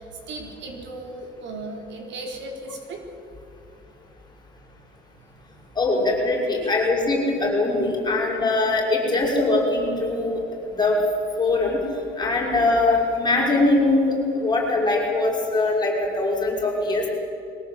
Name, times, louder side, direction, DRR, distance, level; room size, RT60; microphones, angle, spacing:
voice 1, 0.0-3.4 5.4-5.6 6.6-6.9, right 2 dB, 70° right, 3 dB, 4.0 m, -37 dB
voice 2, 5.8-10.4 10.7-11.0 11.4-11.8 12.2-17.1, left 2 dB, 20° left, -3 dB, 5.8 m, -22 dB
22.5 x 18.5 x 8.8 m, 2.8 s
cardioid pair, 145°, 20 cm